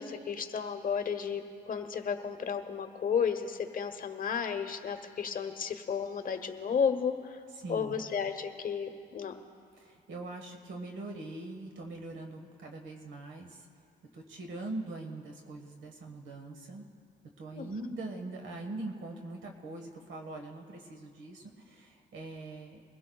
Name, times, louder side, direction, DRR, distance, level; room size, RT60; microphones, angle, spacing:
voice 1, 0.0-7.4 7.7-9.3 17.5-17.7, left 6 dB, 45° left, 7 dB, 1.0 m, -33 dB
voice 2, 7.5-8.0 9.8-13.7 14.1-16.9 17.4-22.8, right 2 dB, 70° right, 3 dB, 1.5 m, -42 dB
22.5 x 16.0 x 2.3 m, 2.3 s
cardioid pair, 90°, 20 cm